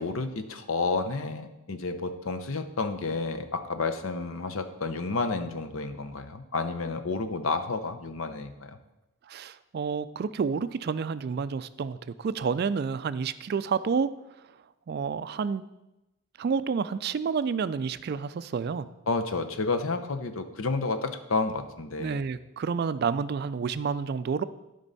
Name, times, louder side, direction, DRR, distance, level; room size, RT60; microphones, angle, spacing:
voice 1, 0.0-8.8 19.1-22.2, left 3 dB, 70° left, 8 dB, 0.7 m, -30 dB
voice 2, 9.3-14.1 14.9-15.6 16.4-18.9 22.0-24.4, right 5 dB, 45° right, 14 dB, 0.3 m, -29 dB
12.5 x 5.3 x 4.0 m, 0.96 s
head